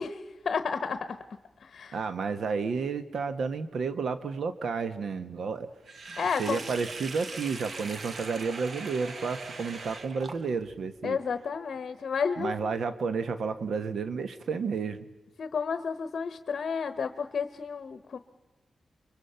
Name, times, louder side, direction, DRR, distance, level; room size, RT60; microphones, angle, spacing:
voice 1, 0.0-2.0 6.2-6.6 11.0-12.5 15.4-18.2, left 6 dB, 60° left, 10 dB, 1.0 m, -32 dB
voice 2, 1.9-5.7 6.4-11.2 12.4-15.0, right 5 dB, 80° right, 10 dB, 1.3 m, -31 dB
Sink (filling or washing), 5.9-10.8, right 3 dB, 50° right, 1.1 m, -41 dB
29.0 x 23.5 x 5.7 m, 1.1 s
wide cardioid pair, 130°, 0 cm